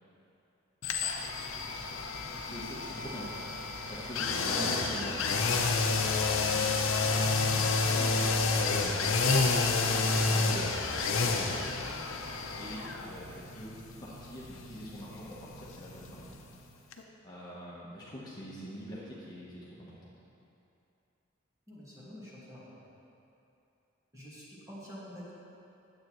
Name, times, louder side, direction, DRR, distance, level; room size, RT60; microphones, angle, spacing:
sound 1, 0.8-16.6 16.9-17.0, left 4 dB, 80° left, 0.6 m, -30 dB
voice 1, 2.4-3.5 3.9-5.6 6.3-6.7 7.5-11.7 12.6-13.7 14.0-16.4 17.2-20.1, equal, 20° left, -8 dB, 1.0 m, -44 dB
voice 2, 21.7-22.6 24.1-25.3, equal, 15° right, -8 dB, 1.8 m, -47 dB
9.2 x 7.8 x 3.1 m, 2.8 s
head